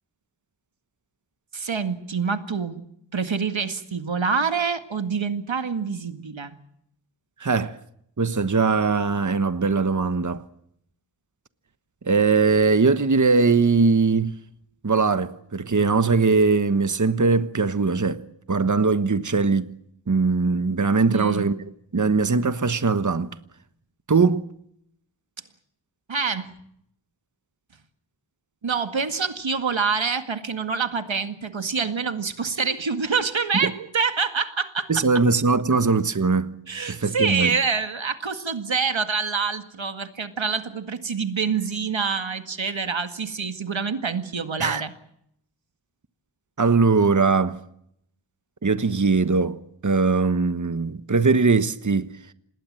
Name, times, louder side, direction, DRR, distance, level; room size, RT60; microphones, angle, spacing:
voice 1, 1.5-2.8 3.1-6.5 21.1-21.5 26.1-26.5 28.6-35.0 36.7-44.9, right 5 dB, 85° right, 2.0 m, -26 dB
voice 2, 7.4-7.8 8.2-10.4 12.0-14.3 14.8-18.2 18.5-19.7 20.1-21.6 21.9-23.3 24.1-24.5 33.6-33.7 34.9-36.5 36.9-37.5 44.6-44.8 46.6-47.6 48.6-52.1, right 4 dB, 40° right, 1.2 m, -21 dB
27.0 x 20.5 x 7.6 m
wide cardioid pair, 65°, 45 cm